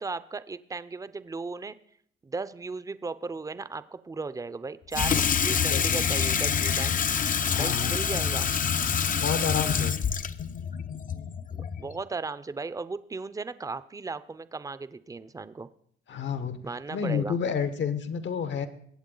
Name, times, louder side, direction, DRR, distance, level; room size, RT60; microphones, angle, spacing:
voice 1, 0.0-1.7 2.2-7.0 7.6-8.5 11.5-15.7 16.6-17.4, right 4 dB, 15° right, 14 dB, 0.6 m, -36 dB
Water tap faucet / Sink (filling or washing), 4.9-12.0, left 7 dB, 45° left, 0.6 m, -26 dB
voice 2, 5.5-6.0 7.5-8.0 9.2-10.0 16.1-18.7, left 7 dB, 65° left, 11 dB, 1.2 m, -30 dB
21.5 x 8.1 x 3.9 m, 0.65 s
cardioid pair, 90°, 20 cm